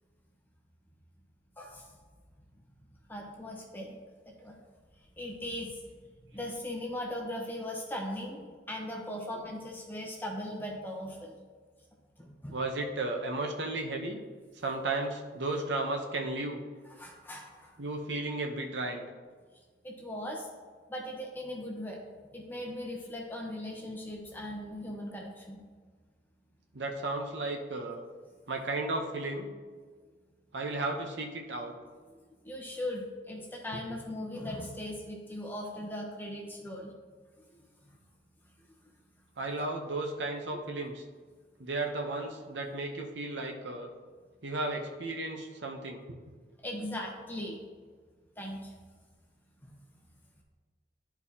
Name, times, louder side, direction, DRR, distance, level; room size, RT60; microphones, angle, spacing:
voice 1, 3.1-4.0 4.3-4.6 5.2-5.8 6.3-8.4 8.7-11.3 12.2-12.5 17.0-17.7 19.8-20.5 20.9-22.0 22.3-25.6 32.1-36.9 37.5-37.6 46.6-47.6 48.4-48.7 49.6-49.7, left 1 dB, 10° left, -1 dB, 0.9 m, -39 dB
voice 2, 9.0-9.4 12.5-14.2 14.5-16.6 17.8-19.1 26.7-28.0 28.5-29.5 30.5-31.8 39.4-41.0 41.6-43.9 44.4-46.2, right 2 dB, 85° right, 3 dB, 0.8 m, -34 dB
10.5 x 4.6 x 2.8 m, 1.5 s
head